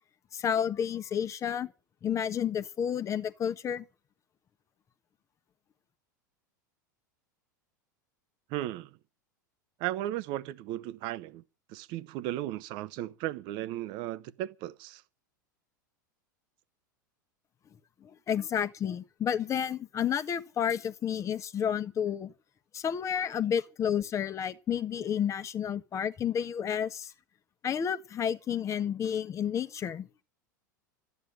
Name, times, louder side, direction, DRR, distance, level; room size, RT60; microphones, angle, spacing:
voice 1, 0.3-1.7 2.0-3.8 18.0-22.3 22.7-27.1 27.6-30.1, left 8 dB, 30° left, 1.3 m, -31 dB
voice 2, 8.5-9.0 9.8-11.4 11.7-15.0, right 14 dB, 50° right, 1.1 m, -35 dB
13.5 x 9.6 x 9.9 m
figure-of-eight pair, 85°, 10 cm